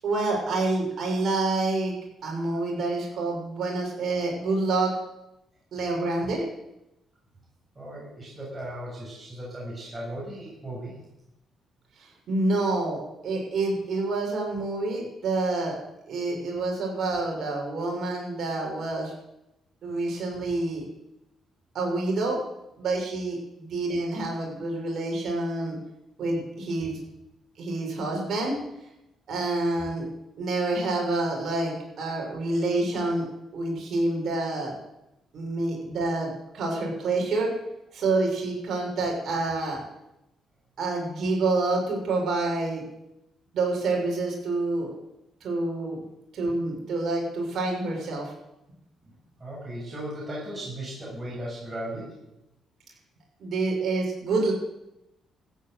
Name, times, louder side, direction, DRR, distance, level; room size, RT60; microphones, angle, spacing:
voice 1, 0.0-2.0 2.2-4.9 5.7-6.4 12.0-15.7 16.1-19.1 19.8-20.8 21.7-22.4 22.8-25.8 26.2-27.0 27.6-28.6 29.3-30.1 30.4-33.3 33.5-34.7 35.3-37.5 37.9-39.8 40.8-42.8 43.5-44.9 45.4-46.0 46.3-48.3 53.4-54.5, right 2 dB, 60° right, 0 dB, 7.1 m, -27 dB
voice 2, 7.7-10.9 49.4-52.2, right 1 dB, 25° right, -5 dB, 7.5 m, -36 dB
15.0 x 9.3 x 8.3 m, 0.88 s
cardioid pair, 90°, 0 cm